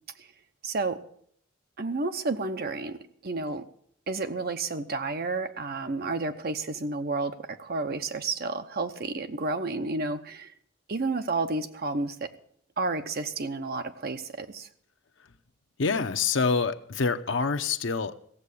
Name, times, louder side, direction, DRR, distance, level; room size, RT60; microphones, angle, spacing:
voice 1, 0.6-1.0 1.8-3.0 3.2-3.6 4.1-10.5 10.9-12.3 12.8-14.7, right 3 dB, 50° right, 8 dB, 0.9 m, -31 dB
voice 2, 15.8-18.1, left 4 dB, 70° left, 10 dB, 0.8 m, -26 dB
16.0 x 7.6 x 8.4 m, 0.64 s
head